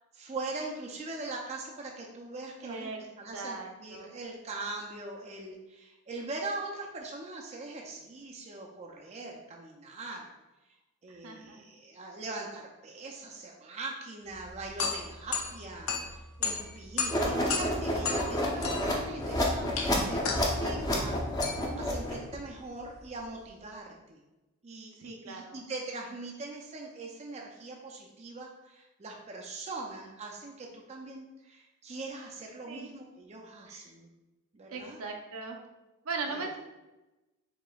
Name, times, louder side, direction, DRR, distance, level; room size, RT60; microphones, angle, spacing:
voice 1, 0.1-2.9 3.2-10.3 11.0-21.2 21.8-24.2 24.6-34.1 34.5-35.0 36.3-36.5, right 2 dB, 30° right, 0 dB, 0.4 m, -41 dB
voice 2, 2.6-3.0 3.3-4.1 11.2-11.6 25.0-25.6 32.6-32.9 33.7-33.9 34.7-35.6 36.0-36.6, right 4 dB, 70° right, 2 dB, 0.6 m, -39 dB
sound 1, 14.3-23.5, left 5 dB, 65° left, 0.6 m, -36 dB
sound 2, 17.1-22.3, left 1 dB, 15° left, 0.6 m, -30 dB
4.9 x 3.5 x 2.3 m, 1.1 s
head